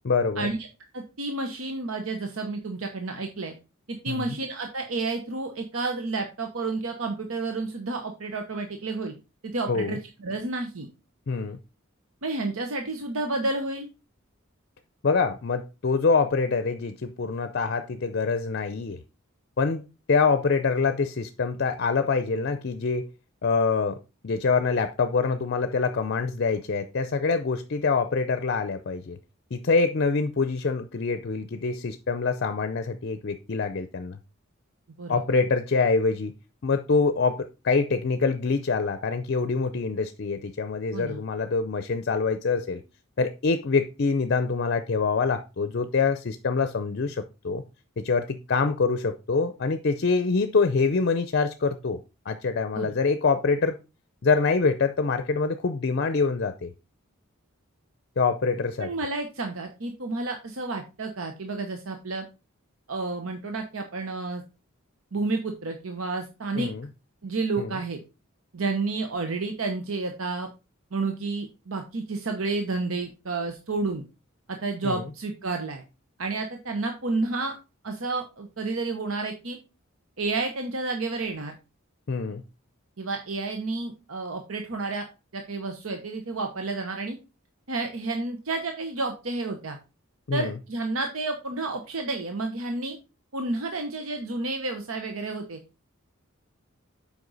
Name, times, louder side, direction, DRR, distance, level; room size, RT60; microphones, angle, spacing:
voice 1, 0.0-0.5 4.1-4.4 9.7-10.0 11.3-11.6 15.0-19.0 19.6-19.8 20.1-23.1 23.4-24.0 24.2-29.2 29.5-34.2 35.1-36.3 36.6-42.8 43.2-47.6 48.0-52.0 52.3-53.8 54.2-56.7 58.2-58.9 66.6-66.9 67.6-67.7 74.8-75.0 82.1-82.4 90.3-90.6, left 4 dB, 55° left, 0.5 m, -25 dB
voice 2, 0.9-3.5 3.9-9.1 9.4-10.9 12.2-13.9 35.0-35.2 40.9-41.2 52.7-52.9 58.8-62.3 62.9-64.4 65.1-66.7 67.2-68.0 68.5-70.5 70.9-74.0 74.5-75.8 76.2-77.6 77.8-79.6 80.2-81.6 83.0-85.0 85.3-87.2 87.7-89.8 90.3-93.0 93.3-95.6, right 3 dB, 80° right, 1.0 m, -30 dB
8.0 x 5.2 x 4.0 m
head